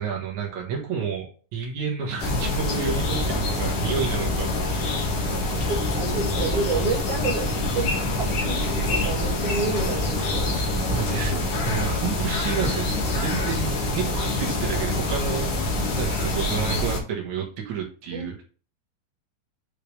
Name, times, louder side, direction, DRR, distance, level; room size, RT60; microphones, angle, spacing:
voice 1, 0.0-5.4 10.9-15.6 15.9-18.4, right 6 dB, 80° right, -1 dB, 1.7 m, -30 dB
sound 1, 2.2-17.0, left 2 dB, 55° left, 2.7 m, -25 dB
voice 2, 5.7-7.5 7.7-10.8 11.1-11.2 18.1-18.3, right 4 dB, 40° right, -2 dB, 2.4 m, -29 dB
8.8 x 5.2 x 3.4 m, 0.39 s
omnidirectional pair, 5.6 m